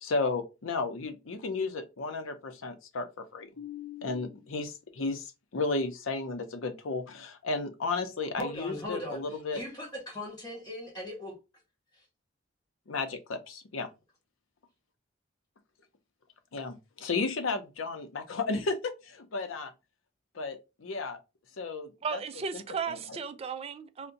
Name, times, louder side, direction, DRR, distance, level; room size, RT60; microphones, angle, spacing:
voice 1, 0.0-9.6 12.9-13.9 16.5-19.7 20.3-21.2 21.6-22.2 22.5-23.0, left 3 dB, 85° left, 0.6 m, -34 dB
voice 2, 8.4-11.3, left 1 dB, 20° left, 1.5 m, -39 dB
voice 3, 22.0-24.1, right 6 dB, 30° right, 0.3 m, -35 dB
2.6 x 2.1 x 3.8 m
head